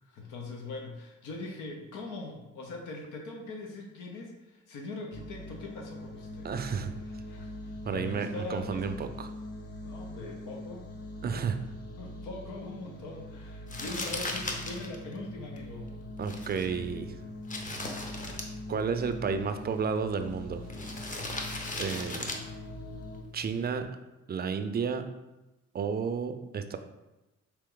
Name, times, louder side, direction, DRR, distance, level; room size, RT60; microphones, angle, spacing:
voice 1, 0.0-6.5 7.3-8.9 9.8-10.9 11.3-11.5 12.0-16.0, left 2 dB, 85° left, 1 dB, 0.7 m, -41 dB
sound 1, 5.1-23.2, left 1 dB, 55° left, 1.0 m, -43 dB
voice 2, 6.4-6.9 7.9-9.3 11.2-11.6 16.2-17.1 18.7-20.6 21.7-22.3 23.3-24.0 24.3-25.1 25.7-26.8, right 6 dB, 30° right, 8 dB, 0.4 m, -32 dB
Crumpling crinkling, 13.7-23.8, left 2 dB, 25° left, 0.7 m, -40 dB
4.3 x 3.0 x 3.8 m, 1.0 s
cardioid pair, 90°, 30 cm